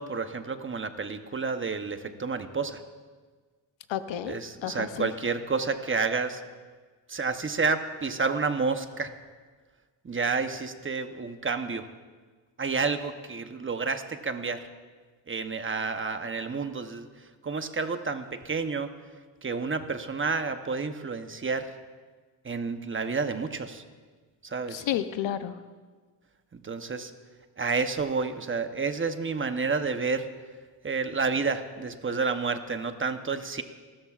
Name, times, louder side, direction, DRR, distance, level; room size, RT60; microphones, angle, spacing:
voice 1, 0.0-2.8 4.2-6.4 7.1-9.1 10.0-11.9 12.6-14.7 15.3-17.1 17.4-18.9 19.4-21.7 22.4-23.8 24.4-24.9 26.5-27.1 27.6-30.3 30.8-33.6, right 4 dB, 25° right, 8 dB, 0.9 m, -30 dB
voice 2, 3.9-5.1 24.7-25.5, left 11 dB, 80° left, 11 dB, 0.8 m, -31 dB
28.0 x 13.0 x 2.5 m, 1.4 s
cardioid pair, 100°, 44 cm